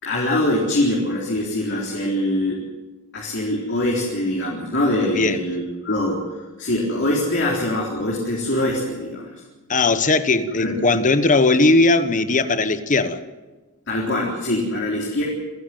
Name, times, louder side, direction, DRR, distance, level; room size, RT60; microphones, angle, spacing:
voice 1, 0.0-2.6 3.1-9.4 10.6-10.8 13.9-15.2, left 1 dB, 55° left, 4.0 m, -23 dB
voice 2, 5.0-5.4 9.7-13.2, left 3 dB, 35° left, 1.1 m, -18 dB
28.0 x 11.0 x 9.2 m
head